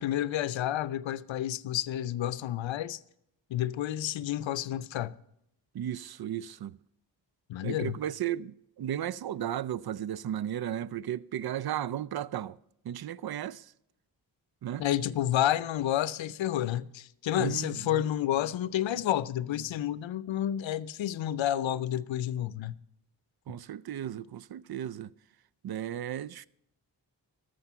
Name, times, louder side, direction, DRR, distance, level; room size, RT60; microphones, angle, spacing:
voice 1, 0.0-3.0 3.5-5.1 7.5-8.0 14.8-22.7, left 12 dB, 75° left, 0.6 m, -30 dB
voice 2, 5.7-6.8 7.6-12.6 12.8-13.7 14.6-14.9 17.4-18.0 23.5-25.1 25.6-26.5, right 11 dB, 55° right, 0.5 m, -35 dB
13.5 x 6.5 x 5.6 m
cardioid pair, 40°, 46 cm